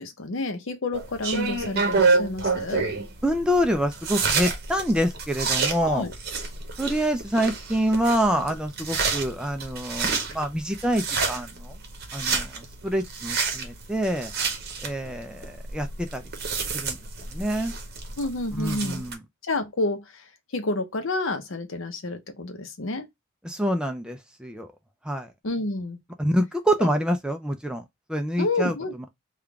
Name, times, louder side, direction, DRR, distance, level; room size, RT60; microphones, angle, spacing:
voice 1, 0.0-2.9 5.8-6.1 18.2-19.0 19.4-20.2 20.5-23.1 25.4-26.0 26.8-26.9 28.4-28.9, left 2 dB, 70° left, 0.7 m, -29 dB
sound 1, 0.9-19.1, right 4 dB, 50° right, 0.8 m, -29 dB
voice 2, 3.2-6.0 6.8-11.7 12.1-14.3 14.8-16.2 16.7-17.0 17.3-17.7 18.5-19.2 23.4-24.7 25.0-25.3 26.2-27.8 28.1-28.7, equal, 5° right, 0.3 m, -26 dB
3.5 x 2.3 x 3.4 m
head